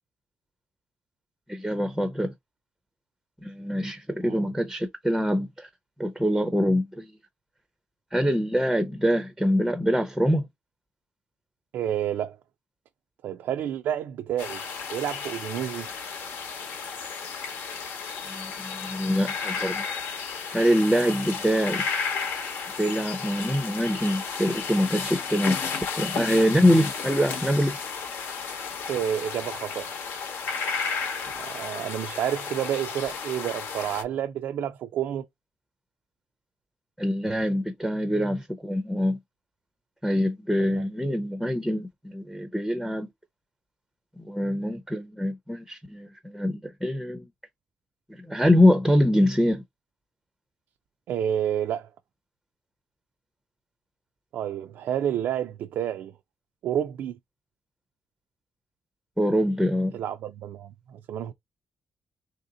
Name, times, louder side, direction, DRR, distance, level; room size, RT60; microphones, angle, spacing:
voice 1, 1.5-2.3 3.4-5.7 6.0-7.1 8.1-10.5 18.2-19.9 20.5-21.9 22.8-25.6 26.0-27.8 37.0-39.2 40.0-43.1 44.2-47.2 48.1-49.6 59.2-60.0, equal, ahead, 0.5 m, -24 dB
voice 2, 11.7-12.4 13.2-14.6 14.9-15.9 28.9-29.9 31.3-35.3 40.6-40.7 51.1-51.9 54.3-56.1 56.6-57.2 59.9-61.3, right 10 dB, 85° right, 0.3 m, -29 dB
sound 1, 14.4-34.0, left 6 dB, 90° left, 0.9 m, -33 dB
3.3 x 2.8 x 3.7 m
cardioid pair, 145°, 4 cm